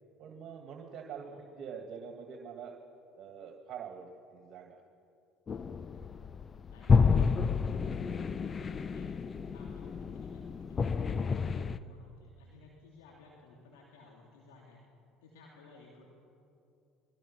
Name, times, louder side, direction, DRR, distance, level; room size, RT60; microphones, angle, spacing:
voice 1, 0.2-2.8 3.2-4.8, right 7 dB, 55° right, 2 dB, 2.2 m, -45 dB
sound 1, 5.5-11.8, left 5 dB, 35° left, 0.8 m, -30 dB
voice 2, 5.7-6.1 6.7-9.1 9.5-14.8 15.2-16.0, left 3 dB, 80° left, -3 dB, 3.5 m, -57 dB
29.0 x 22.0 x 5.7 m, 2.6 s
hypercardioid pair, 70°, 0 cm